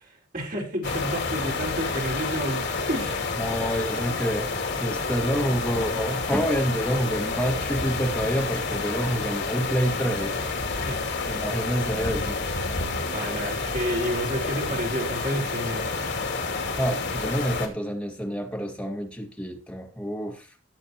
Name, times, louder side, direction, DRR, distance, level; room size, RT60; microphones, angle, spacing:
voice 1, 0.3-3.2 10.8-11.1 13.1-15.9, equal, 45° right, 4.8 m, -30 dB
sound 1, 0.8-17.7, left 3 dB, 65° left, 2.7 m, -29 dB
voice 2, 3.3-4.5 4.8-10.4 11.3-12.4 16.8-20.5, equal, 5° left, 2.0 m, -28 dB
18.5 x 7.8 x 3.0 m
head